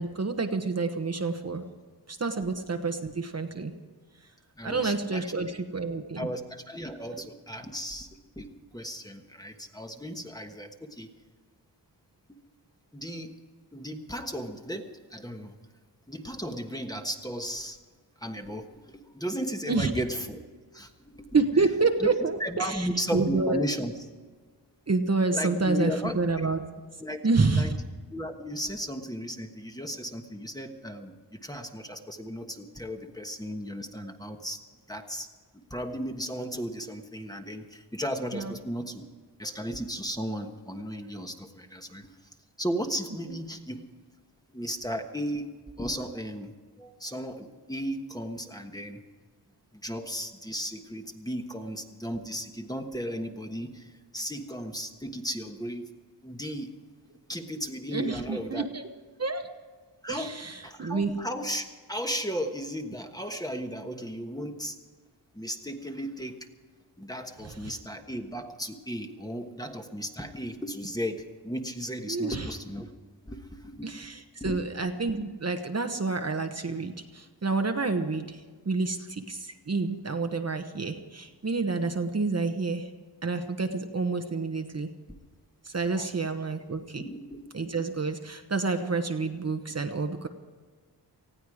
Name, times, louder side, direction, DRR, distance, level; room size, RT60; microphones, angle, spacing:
voice 1, 0.0-1.7 2.1-3.7 4.6-6.3 19.7-19.9 21.3-23.6 24.9-26.6 27.2-27.8 38.3-38.5 43.3-43.4 57.9-58.9 59.2-59.5 60.1-61.1 67.6-67.7 72.1-72.5 73.8-82.9 83.2-84.9 85.6-87.0 87.5-90.3, right 3 dB, 35° right, 6 dB, 1.1 m, -28 dB
voice 2, 4.6-5.3 6.2-8.1 8.4-11.1 12.3-12.4 12.9-13.3 13.7-15.6 16.1-17.8 18.2-20.4 20.7-21.4 22.0-22.1 22.4-23.9 25.3-26.2 27.0-27.2 27.5-27.7 28.1-34.6 34.9-35.3 35.7-39.0 39.4-42.2 42.6-43.8 44.5-45.5 45.8-49.0 49.7-55.9 56.2-56.7 57.3-58.7 60.0-64.8 65.3-66.4 67.0-72.9 73.3-74.1 74.4-74.6 85.9-86.1 87.0-87.4, equal, 10° left, 4 dB, 1.3 m, -35 dB
19.5 x 15.0 x 4.9 m, 1.5 s
wide cardioid pair, 100°, 42 cm